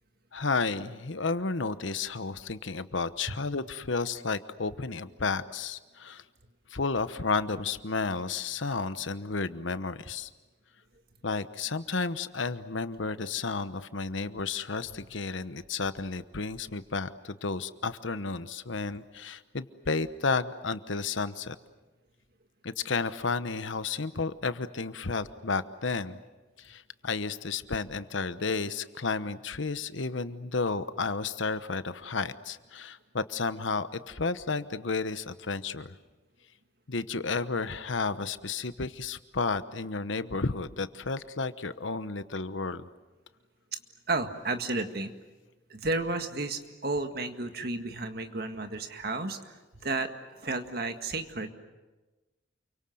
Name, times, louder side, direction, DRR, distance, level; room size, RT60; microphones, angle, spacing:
voice 1, 0.3-6.2 6.7-10.3 11.2-21.6 22.6-26.2 26.6-35.9 36.9-42.9, left 4 dB, 75° left, 12 dB, 1.1 m, -32 dB
voice 2, 44.1-45.1 45.7-50.1 50.4-51.5, right 3 dB, 50° right, 6 dB, 1.9 m, -32 dB
29.0 x 24.0 x 7.9 m, 1.2 s
head